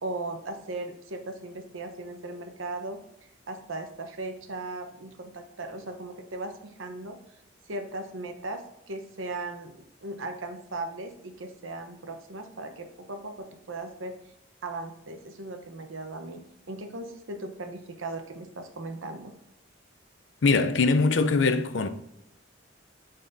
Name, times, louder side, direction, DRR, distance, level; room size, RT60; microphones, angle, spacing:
voice 1, 0.0-3.0 3.5-7.2 7.7-14.2 14.6-19.3, right 2 dB, 85° right, 0.9 m, -37 dB
voice 2, 20.4-21.9, left 4 dB, 70° left, 0.5 m, -22 dB
8.9 x 4.1 x 2.6 m
head